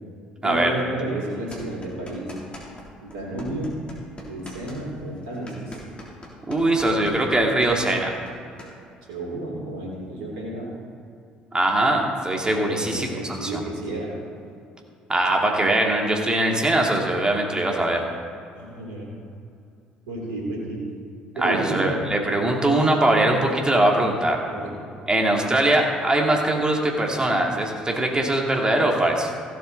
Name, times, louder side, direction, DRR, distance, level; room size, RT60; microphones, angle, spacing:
voice 1, 0.4-2.3 3.0-3.7 4.3-5.8 9.1-10.7 12.7-14.1 18.5-19.1 20.1-20.8 21.3-22.0 24.5-24.7, right 1 dB, 75° right, -3 dB, 3.1 m, -31 dB
sound 1, 1.5-2.9 3.1-8.7, left 1 dB, 25° left, 3.1 m, -42 dB
voice 2, 6.5-8.1 11.5-13.6 15.1-18.0 21.4-24.4 25.1-29.3, right 1 dB, 20° right, 0 dB, 2.4 m, -21 dB
16.0 x 7.3 x 4.1 m, 2.5 s
figure-of-eight pair, 55°, 4 cm